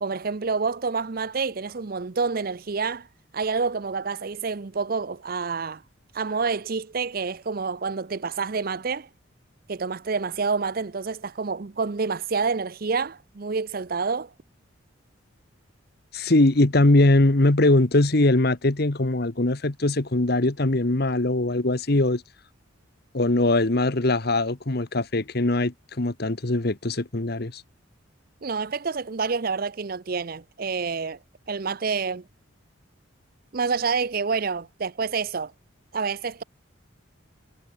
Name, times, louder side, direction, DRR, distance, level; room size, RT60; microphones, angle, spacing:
voice 1, 0.0-3.1 3.3-5.8 6.1-9.1 9.7-14.3 28.4-31.2 31.5-32.3 33.5-35.5 35.9-36.4, right 5 dB, 45° right, 0.6 m, -28 dB
voice 2, 16.1-22.2 23.1-27.6, left 2 dB, 50° left, 1.2 m, -21 dB
head